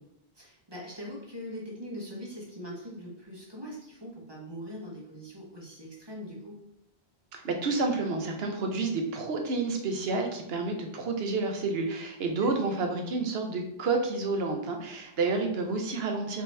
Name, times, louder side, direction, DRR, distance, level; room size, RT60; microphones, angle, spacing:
voice 1, 0.3-6.6 12.4-12.8, equal, 25° right, -4 dB, 1.1 m, -42 dB
voice 2, 7.3-16.4, right 3 dB, 75° right, 3 dB, 1.0 m, -30 dB
5.2 x 2.9 x 3.3 m, 0.82 s
omnidirectional pair, 1.1 m